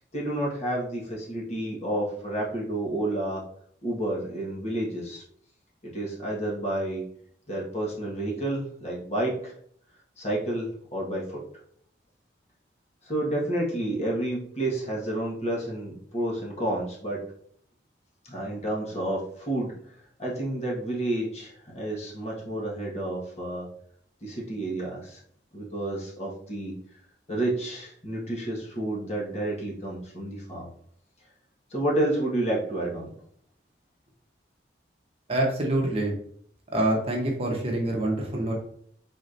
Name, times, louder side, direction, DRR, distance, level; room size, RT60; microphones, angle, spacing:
voice 1, 0.1-3.4 3.8-5.2 5.8-7.0 7.5-9.5 10.2-11.4 13.0-17.2 18.3-19.7 20.2-23.7 24.2-25.2 25.5-26.7 27.3-30.7 31.7-33.1, right 1 dB, 35° left, -3 dB, 1.3 m, -30 dB
voice 2, 35.3-36.2 36.7-38.5, right 1 dB, 30° right, -1 dB, 1.0 m, -26 dB
4.8 x 4.2 x 2.6 m, 0.63 s
head